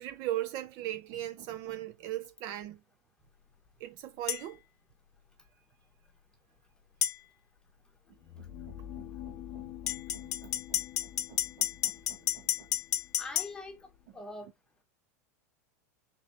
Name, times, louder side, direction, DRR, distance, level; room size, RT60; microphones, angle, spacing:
voice 1, 0.0-2.8 3.8-4.6 8.7-10.8 11.3-12.7, right 13 dB, 45° right, 0.5 m, -40 dB
sound 1, 4.3-4.4 7.0-7.2 9.9-13.5, left 11 dB, 85° left, 0.7 m, -31 dB
sound 2, 8.1-14.0, left 12 dB, 35° left, 0.6 m, -47 dB
voice 2, 13.2-13.8 14.1-14.5, left 2 dB, 10° left, 1.2 m, -42 dB
3.7 x 3.2 x 4.1 m
supercardioid pair, 135°, 9 cm